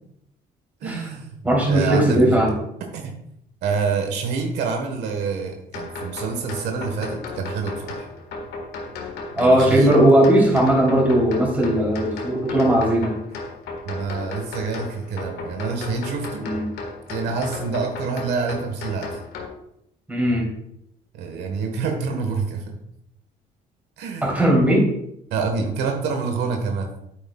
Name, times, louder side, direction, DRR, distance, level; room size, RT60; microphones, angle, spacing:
voice 1, 0.8-1.4 1.7-2.4 2.9-3.1 3.6-8.1 9.4-10.0 13.8-16.5 17.1-19.2 21.1-22.7 24.0-24.3 25.3-26.9, right 5 dB, 80° right, 3 dB, 1.4 m, -27 dB
voice 2, 1.4-2.5 9.4-13.2 16.4-16.7 20.1-20.5 24.2-24.9, right 1 dB, 10° right, -2 dB, 3.2 m, -18 dB
sound 1, 5.7-19.5, left 3 dB, 75° left, 1.6 m, -35 dB
9.1 x 7.9 x 2.3 m, 0.77 s
cardioid pair, 110°, 17 cm